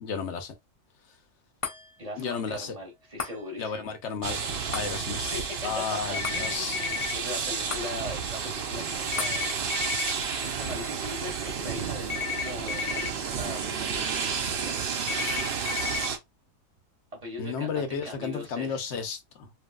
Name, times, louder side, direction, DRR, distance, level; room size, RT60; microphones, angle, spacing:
voice 1, 0.0-0.5 2.2-2.8 3.6-4.4 4.7-5.4 5.6-6.8 17.4-19.5, left 6 dB, 60° left, 0.9 m, -33 dB
sound 1, 1.6-14.2 14.6-14.7, left 5 dB, 35° left, 0.5 m, -44 dB
voice 2, 2.0-3.9 5.2-9.5 10.4-12.9 13.3-13.6 14.5-14.8 17.2-19.1, left 1 dB, 30° right, 0.9 m, -40 dB
sound 2, 4.2-16.2, right 6 dB, 70° right, 0.5 m, -31 dB
sound 3, 6.1-7.1 9.1-10.1 12.1-13.1 15.1-16.1, left 7 dB, 85° left, 1.2 m, -32 dB
3.0 x 2.6 x 2.3 m
omnidirectional pair, 1.6 m